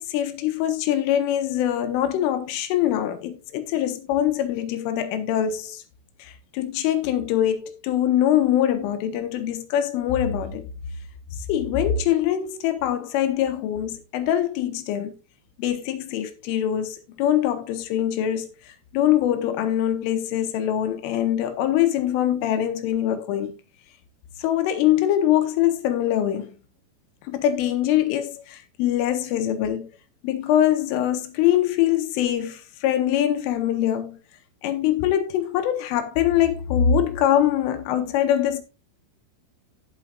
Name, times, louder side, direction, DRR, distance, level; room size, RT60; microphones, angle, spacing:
voice 1, 0.0-5.8 6.2-10.7 11.5-15.2 15.6-18.5 18.9-23.5 24.4-26.5 27.3-29.9 30.2-34.2 34.6-38.6, left 11 dB, 80° left, 3.2 m, -23 dB
15.5 x 5.9 x 2.3 m
omnidirectional pair, 5.9 m